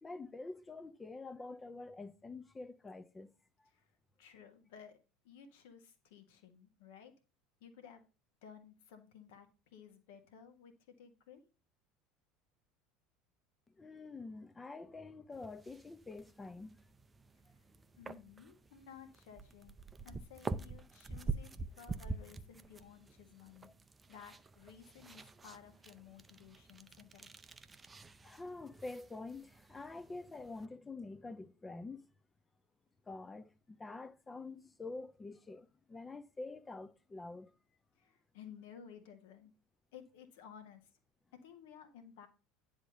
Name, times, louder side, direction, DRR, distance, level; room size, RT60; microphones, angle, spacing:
voice 1, 0.0-3.3 13.8-16.8 28.2-32.0 33.1-37.5, left 3 dB, 15° left, 0.8 m, -47 dB
voice 2, 4.2-5.0 5.2-7.1 7.6-8.0 8.4-11.4 18.0-19.8 20.0-21.5 21.8-23.7 24.1-27.3 37.9-39.5 39.9-40.9 41.3-42.3, left 8 dB, 60° left, 1.5 m, -56 dB
sound 1, 15.3-30.6, right 3 dB, 20° right, 0.6 m, -47 dB
9.9 x 3.6 x 6.6 m
figure-of-eight pair, 70°, 0 cm